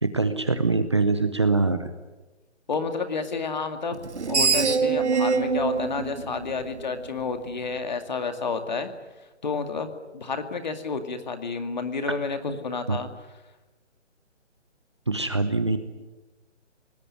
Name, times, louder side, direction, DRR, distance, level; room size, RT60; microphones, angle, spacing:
voice 1, 0.0-1.9 12.9-13.0 15.1-15.8, right 3 dB, 25° right, 9 dB, 0.8 m, -23 dB
voice 2, 2.7-4.0 4.3-8.9 9.4-13.1, left 4 dB, 35° left, 8 dB, 2.2 m, -30 dB
Screech, 4.0-7.2, right 5 dB, 65° right, 2.5 m, -24 dB
25.0 x 19.5 x 9.6 m, 1.1 s
hypercardioid pair, 175°, 36 cm